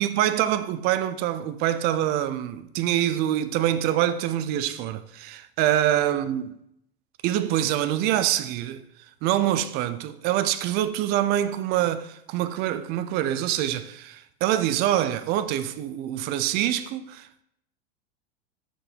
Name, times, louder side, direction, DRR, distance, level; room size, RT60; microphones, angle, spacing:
voice 1, 0.0-6.5 7.2-8.8 9.2-17.4, right 12 dB, 30° right, 0.4 m, -25 dB
6.3 x 4.6 x 5.1 m
hypercardioid pair, 130°, 32 cm